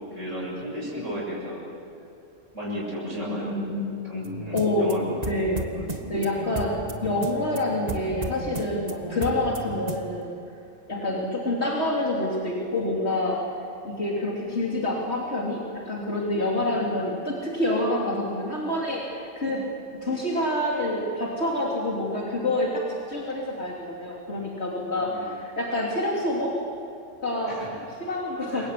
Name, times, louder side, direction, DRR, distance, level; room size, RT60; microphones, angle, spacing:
voice 1, 0.1-1.6 2.5-3.6 4.0-5.2 5.7-5.9 9.1-9.2 10.9-11.1 16.6-16.7 25.0-25.2 27.4-27.8 28.5-28.7, equal, 75° right, -4 dB, 7.9 m, -34 dB
voice 2, 3.3-3.9 4.5-4.9 5.3-5.6 6.1-10.4 10.9-13.4 13.8-19.6 20.0-26.5 27.2-28.7, left 1 dB, 60° left, -3 dB, 3.6 m, -27 dB
sound 1, 4.2-10.2, right 2 dB, 35° right, 1.8 m, -35 dB
29.0 x 23.5 x 8.6 m, 2.5 s
omnidirectional pair, 1.3 m